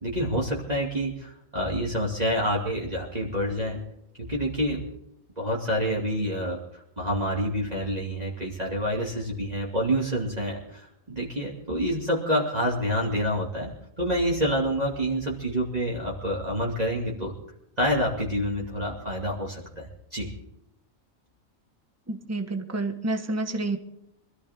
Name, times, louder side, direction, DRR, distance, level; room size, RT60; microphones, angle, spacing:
voice 1, 0.0-3.8 4.2-4.8 5.4-13.7 14.0-17.3 17.8-20.3, equal, 30° right, -4 dB, 2.8 m, -27 dB
voice 2, 22.1-23.8, right 2 dB, 10° right, 6 dB, 1.3 m, -29 dB
24.5 x 14.5 x 3.7 m, 0.82 s
omnidirectional pair, 1.4 m